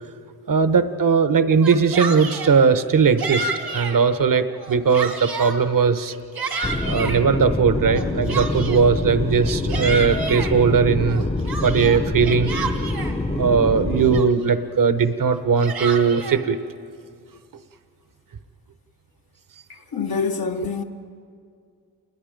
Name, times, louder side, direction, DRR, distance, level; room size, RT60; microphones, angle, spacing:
voice 1, 0.5-6.1 6.9-11.2 11.6-12.5 13.3-16.6, right 5 dB, 60° right, 0.9 m, -19 dB
Yell, 1.5-2.6 3.2-4.0 4.5-5.6 6.1-7.2 7.9-8.9 9.4-10.5 11.1-13.1 13.7-13.8 14.1-14.6 15.3-16.4, right 4 dB, 80° right, 2.0 m, -30 dB
sound 1, 6.6-14.2, left 2 dB, 15° left, 0.6 m, -26 dB
voice 2, 19.7-20.8, left 5 dB, 70° left, 0.9 m, -26 dB
28.5 x 21.0 x 5.1 m
wide cardioid pair, 95°, 37 cm